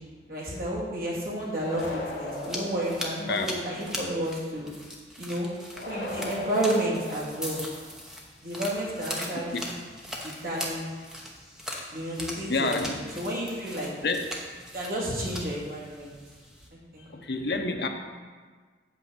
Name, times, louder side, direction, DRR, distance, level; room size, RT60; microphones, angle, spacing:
voice 1, 0.3-4.7 5.2-5.5 5.9-7.6 8.4-9.7 10.2-10.9 11.9-13.9 14.7-16.1 16.9-17.1, right 1 dB, 50° right, -5 dB, 2.4 m, -31 dB
sound 1, 1.5-3.6 5.7-7.8, left 1 dB, 85° left, 2.3 m, -38 dB
sound 2, 1.5-16.7, equal, 5° right, 0.9 m, -40 dB
voice 2, 3.2-3.5 9.3-9.6 11.7-13.0 14.0-14.3 17.0-17.9, left 3 dB, 60° left, 4 dB, 0.8 m, -30 dB
8.2 x 4.5 x 7.1 m, 1.5 s
head